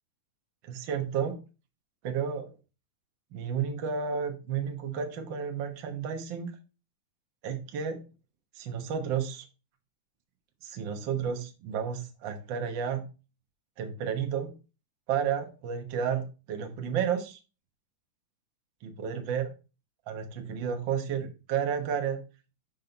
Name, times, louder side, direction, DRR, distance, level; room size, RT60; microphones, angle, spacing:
voice 1, 0.6-1.4 2.0-2.5 3.3-6.5 7.4-8.0 8.5-9.4 10.6-13.0 13.8-14.5 15.1-17.4 18.8-19.5 20.1-22.2, right 7 dB, 65° right, 5 dB, 1.2 m, -32 dB
6.2 x 5.4 x 3.9 m, 0.32 s
omnidirectional pair, 3.8 m